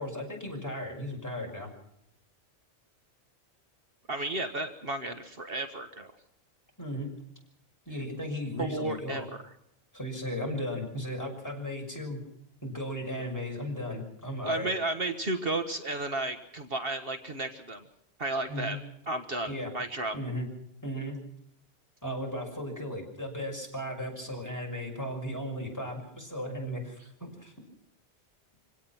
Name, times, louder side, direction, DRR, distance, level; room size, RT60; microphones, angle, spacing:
voice 1, 0.0-1.7 6.8-7.1 7.9-9.3 9.9-12.2 12.6-14.7 18.5-18.8 19.5-19.7 20.1-20.5 20.8-21.2 22.0-27.5, equal, 15° left, 0 dB, 6.2 m, -36 dB
voice 2, 4.1-6.1 8.6-9.5 14.4-17.8 18.2-18.8 19.1-20.1, right 2 dB, 55° right, 7 dB, 1.7 m, -33 dB
25.5 x 17.5 x 6.0 m, 0.76 s
omnidirectional pair, 1.2 m